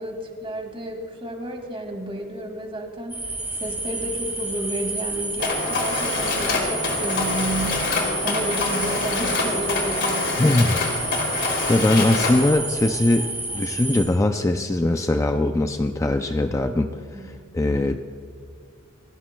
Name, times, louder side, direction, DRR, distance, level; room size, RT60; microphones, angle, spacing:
voice 1, 0.0-7.8 8.2-10.6 17.1-17.3, right 1 dB, 25° right, 3 dB, 2.2 m, -31 dB
sound 1, 3.1-14.0, right 2 dB, 10° right, 3.0 m, -30 dB
Mechanisms, 5.4-12.5, left 3 dB, 60° left, 3.0 m, -26 dB
voice 2, 10.4-10.8 11.7-13.3 13.5-18.0, left 2 dB, 15° left, 6 dB, 0.4 m, -21 dB
29.0 x 17.0 x 2.3 m, 2.1 s
head